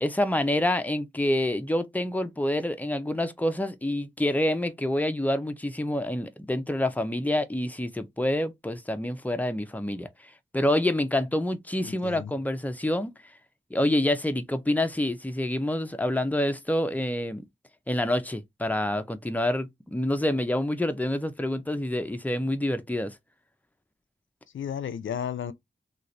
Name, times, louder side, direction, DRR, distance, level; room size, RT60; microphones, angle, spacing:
voice 1, 0.0-10.1 10.5-13.1 13.7-17.4 17.9-23.1, left 1 dB, 10° left, 0.7 m, -27 dB
voice 2, 11.8-12.3 24.5-25.5, left 8 dB, 85° left, 0.4 m, -33 dB
3.1 x 2.5 x 3.9 m
cardioid pair, 45°, 19 cm